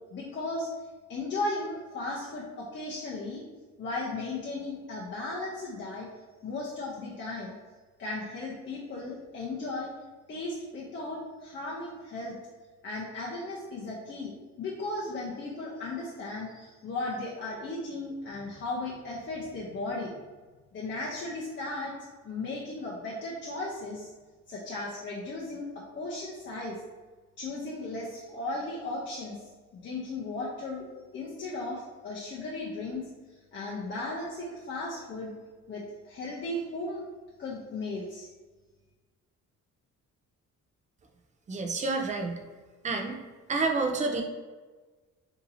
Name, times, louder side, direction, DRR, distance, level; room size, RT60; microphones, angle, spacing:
voice 1, 0.1-0.7 1.1-3.4 3.8-6.1 6.4-7.5 8.0-9.9 10.3-12.4 12.8-20.1 20.7-21.9 22.2-24.1 24.5-25.7 25.9-26.8 27.4-29.4 29.7-35.3 35.7-37.0 37.4-38.3, left 2 dB, 40° left, -5 dB, 0.6 m, -36 dB
voice 2, 41.5-42.4 42.8-43.2 43.5-44.2, right 3 dB, 25° right, 4 dB, 0.4 m, -28 dB
2.8 x 2.7 x 3.9 m, 1.3 s
cardioid pair, 125°, 30 cm